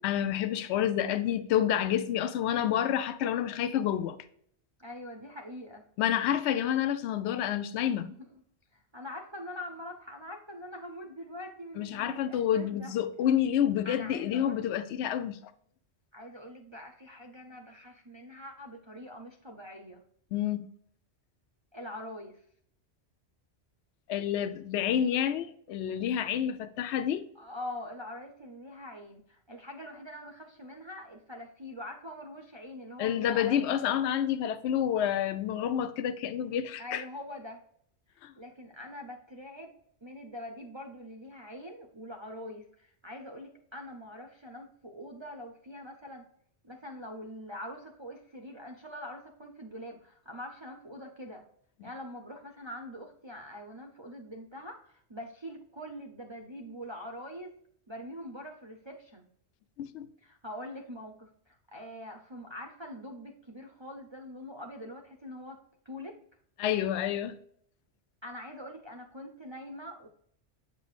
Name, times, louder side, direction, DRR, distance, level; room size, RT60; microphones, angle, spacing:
voice 1, 0.0-4.2 6.0-8.1 11.8-15.4 20.3-20.7 24.1-27.3 33.0-37.0 38.2-38.3 51.8-51.9 59.8-60.1 66.6-67.4, left 10 dB, 75° left, 0.8 m, -29 dB
voice 2, 4.8-5.8 8.1-8.3 8.7-12.9 13.8-14.6 16.1-20.0 21.7-22.4 27.4-33.9 36.8-37.6 38.4-46.2 46.6-51.4 51.8-57.6 57.9-59.2 60.2-65.6 65.8-66.2 68.2-70.1, left 1 dB, 30° right, 0.6 m, -44 dB
8.2 x 5.3 x 2.4 m
omnidirectional pair, 1.2 m